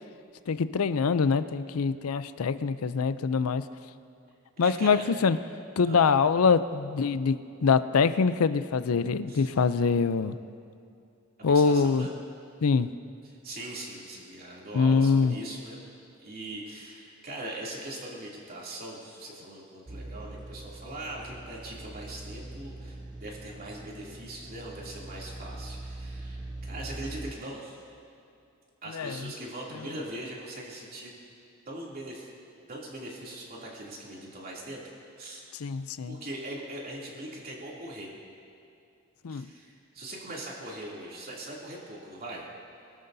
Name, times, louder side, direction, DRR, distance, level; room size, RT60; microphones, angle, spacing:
voice 1, 0.5-3.6 4.6-5.4 5.8-10.3 11.4-12.1 12.6-12.9 14.7-15.4 28.9-29.2 35.6-36.2 39.2-39.5, left 5 dB, 85° left, 13 dB, 0.5 m, -24 dB
voice 2, 4.6-5.1 5.8-6.1 9.3-9.5 11.4-12.2 13.2-15.8 16.2-27.8 28.8-31.1 31.7-32.3 32.7-35.5 36.1-38.1 39.3-42.5, right 1 dB, 45° right, -4 dB, 2.8 m, -41 dB
sound 1, 19.9-27.3, right 2 dB, 20° right, 0.5 m, -42 dB
22.5 x 13.5 x 2.7 m, 2.7 s
head